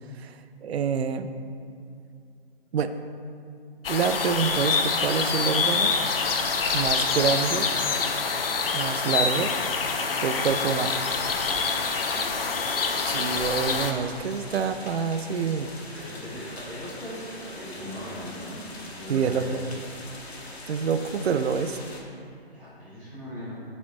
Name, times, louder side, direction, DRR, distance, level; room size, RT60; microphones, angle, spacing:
voice 1, 0.6-1.3 2.7-2.9 3.9-5.9 6.7-7.7 8.7-9.5 10.2-11.0 13.1-15.7 19.1-19.6 20.7-21.8, right 6 dB, 75° right, 10 dB, 0.5 m, -26 dB
sound 1, 3.8-13.9, left 5 dB, 60° left, 0.7 m, -26 dB
sound 2, 9.4-22.0, left 2 dB, 80° left, 1.4 m, -42 dB
voice 2, 11.2-11.6 12.1-12.8 15.9-18.7 19.0-19.5 22.5-23.6, equal, 5° right, -11 dB, 0.7 m, -39 dB
7.4 x 4.3 x 3.7 m, 2.4 s
hypercardioid pair, 165°, 32 cm